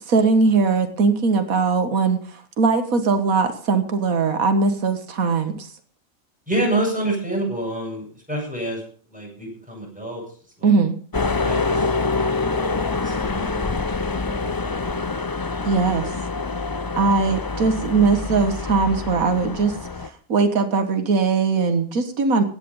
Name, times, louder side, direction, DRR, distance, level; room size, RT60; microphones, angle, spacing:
voice 1, 0.0-5.7 10.6-11.0 15.7-16.1 17.0-22.4, right 4 dB, 90° right, 7 dB, 1.9 m, -20 dB
voice 2, 6.5-10.2 10.6-10.8 11.4-15.1, right 1 dB, 5° right, -2 dB, 7.7 m, -29 dB
sound 1, 11.1-20.1, left 3 dB, 30° left, 0.4 m, -26 dB
17.0 x 10.0 x 5.5 m, 0.44 s
omnidirectional pair, 1.4 m